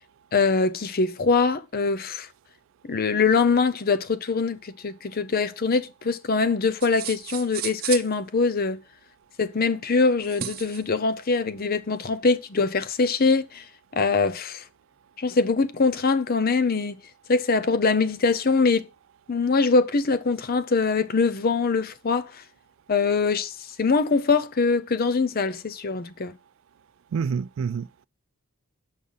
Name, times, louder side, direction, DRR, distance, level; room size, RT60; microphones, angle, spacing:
voice 1, 0.3-2.3 2.8-8.8 9.4-13.6 13.9-14.6 15.2-17.0 17.3-18.9 19.3-22.4 22.9-23.5 23.8-26.3, left 4 dB, 45° left, 0.6 m, -23 dB
sound 1, 6.8-8.1 10.2-10.8, right 10 dB, 45° right, 0.7 m, -33 dB
voice 2, 27.1-28.1, right 6 dB, 60° right, 0.3 m, -28 dB
6.4 x 5.5 x 5.6 m
head